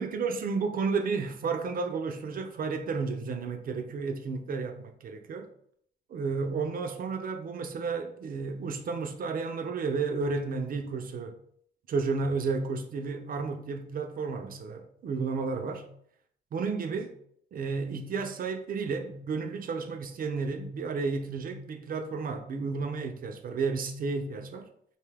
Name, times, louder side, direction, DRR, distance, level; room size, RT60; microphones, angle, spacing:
voice 1, 0.0-5.5 6.1-11.4 11.9-15.8 16.5-17.1 17.5-24.7, right 4 dB, 45° right, 0.4 m, -32 dB
2.6 x 2.2 x 3.3 m
cardioid pair, 90°, 20 cm